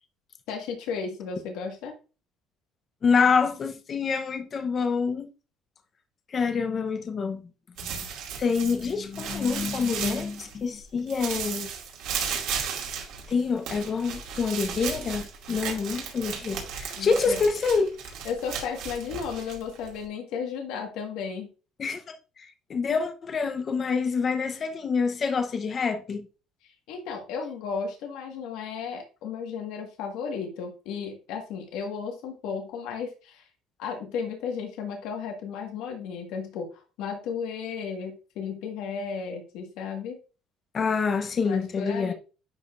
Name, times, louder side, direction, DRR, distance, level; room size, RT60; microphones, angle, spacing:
voice 1, 0.5-1.9 17.0-17.4 18.2-21.5 26.9-33.4 33.8-36.6 37.0-40.2 41.4-42.1, left 6 dB, 75° left, 1.6 m, -34 dB
voice 2, 3.0-5.3 6.3-7.4 7.8-8.0 8.4-11.7 13.3-17.9 21.8-26.3 40.7-42.1, left 5 dB, 30° left, 0.7 m, -26 dB
sound 1, 7.8-10.8 11.1-20.1, right 7 dB, 75° right, 2.3 m, -35 dB
10.5 x 4.9 x 2.5 m
cardioid pair, 150°, 0 cm